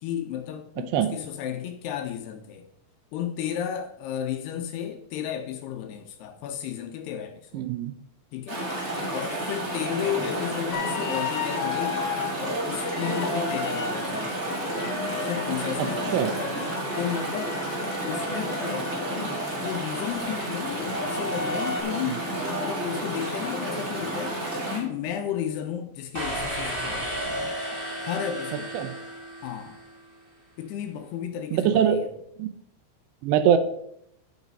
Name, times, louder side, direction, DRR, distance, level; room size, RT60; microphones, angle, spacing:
voice 1, 0.0-2.7 3.1-7.7 8.3-8.6 9.1-12.0 12.4-14.4 15.2-16.3 17.0-17.6 18.0-22.2 22.6-27.3 28.0-28.8 29.4-29.8 30.6-32.2, left 9 dB, 80° left, 6 dB, 2.5 m, -33 dB
voice 2, 7.5-7.9 16.1-16.3 22.1-22.2 28.7-29.0 31.5-32.0 32.4-32.5 33.2-33.6, right 9 dB, 80° right, 10 dB, 2.7 m, -22 dB
Chatter / Stream, 8.5-24.8, right 1 dB, 25° right, 1.7 m, -31 dB
sound 1, 10.7-12.3 12.8-18.7 20.9-21.8, left 6 dB, 60° left, 2.8 m, -34 dB
sound 2, 26.1-29.9, equal, 60° right, 0.5 m, -33 dB
13.0 x 6.2 x 4.1 m, 0.74 s
omnidirectional pair, 5.2 m